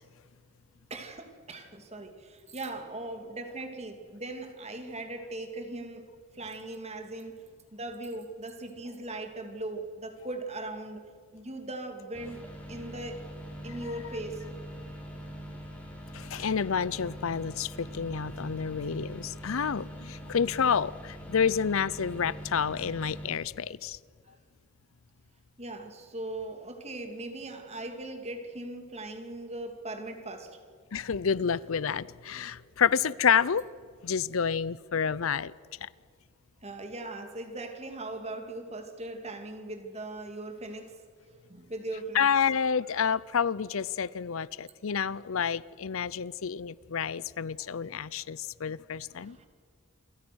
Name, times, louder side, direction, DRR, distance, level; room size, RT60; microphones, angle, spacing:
voice 1, 0.9-7.4 7.7-11.0 11.3-13.2 13.6-14.5 25.6-30.6 36.6-41.0 41.5-42.3 47.6-47.8 49.1-49.5, right 2 dB, 30° right, 2.8 m, -39 dB
sound 1, 12.1-23.3, equal, 10° left, 5.7 m, -43 dB
voice 2, 16.1-24.0 30.9-33.6 34.0-35.5 42.1-49.4, left 7 dB, 75° left, 0.6 m, -29 dB
29.0 x 24.0 x 6.3 m
head